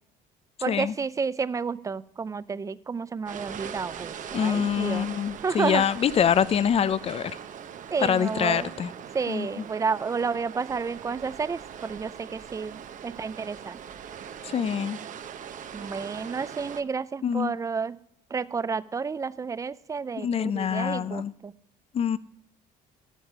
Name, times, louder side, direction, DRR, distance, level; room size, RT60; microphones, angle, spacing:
voice 1, 0.6-5.1 5.4-5.8 7.9-8.7 9.1-13.8 15.7-18.0 18.3-21.5, right 5 dB, 20° right, 0.4 m, -31 dB
sound 1, 3.3-16.8, right 8 dB, 50° right, 0.7 m, -41 dB
voice 2, 4.3-7.3 8.0-8.9 9.3-9.6 14.4-15.0 17.2-17.5 20.2-21.3 21.9-22.2, left 8 dB, 35° left, 0.5 m, -25 dB
12.5 x 7.2 x 4.6 m
cardioid pair, 110°, 17 cm